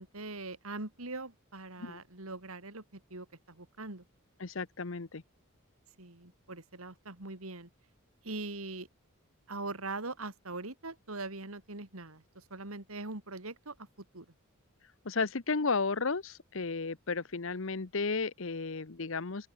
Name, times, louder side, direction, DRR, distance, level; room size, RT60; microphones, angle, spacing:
voice 1, 0.0-4.0 6.0-7.7 8.2-8.9 9.5-13.9 14.1-14.2, right 3 dB, 75° right, 3.0 m, -42 dB
voice 2, 4.4-5.2 15.0-19.5, left 4 dB, 60° left, 1.0 m, -33 dB
open air
head